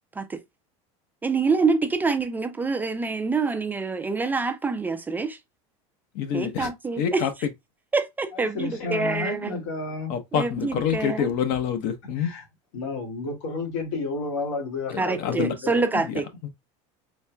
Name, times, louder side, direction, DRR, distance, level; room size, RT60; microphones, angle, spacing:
voice 1, 1.2-5.4 6.3-7.2 7.9-9.6 10.3-11.3 15.0-16.3, right 4 dB, 10° right, 0.3 m, -26 dB
voice 2, 6.1-6.7 7.0-7.3 10.1-12.3 14.9-15.5 15.9-16.5, left 8 dB, 60° left, 0.8 m, -27 dB
voice 3, 8.3-10.2 12.2-12.4 12.7-15.8, left 3 dB, 85° left, 2.3 m, -31 dB
4.3 x 3.3 x 2.2 m
supercardioid pair, 145°, 15 cm